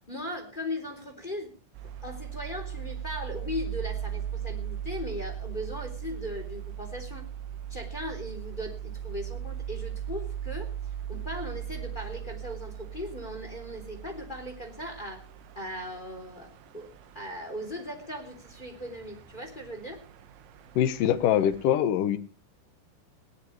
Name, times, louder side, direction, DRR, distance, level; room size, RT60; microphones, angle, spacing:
voice 1, 0.1-1.5 1.8-7.3 7.7-10.7 11.1-15.3 15.5-16.9 17.1-20.0, left 1 dB, 10° left, 5 dB, 2.7 m, -38 dB
sound 1, 1.7-21.6, right 9 dB, 75° right, 3.7 m, -39 dB
voice 2, 20.8-22.2, left 10 dB, 70° left, 11 dB, 2.0 m, -23 dB
20.5 x 18.0 x 3.2 m, 0.37 s
omnidirectional pair, 5.6 m